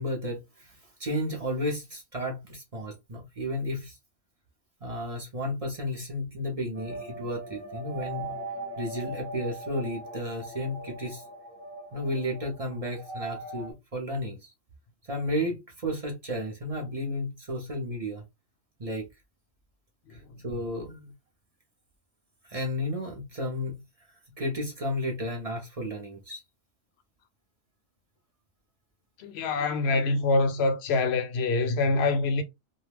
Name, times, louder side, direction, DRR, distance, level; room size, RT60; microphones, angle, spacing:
voice 1, 0.0-4.0 4.8-8.4 8.8-11.2 11.9-14.5 15.1-18.2 18.8-19.1 20.1-21.1 22.5-23.8 24.4-26.4, left 1 dB, 40° right, 0.6 m, -33 dB
sound 1, 6.7-13.7, right 2 dB, 25° right, 1.0 m, -40 dB
voice 2, 29.2-32.4, left 3 dB, 65° left, 0.7 m, -25 dB
2.3 x 2.1 x 3.2 m
omnidirectional pair, 1.3 m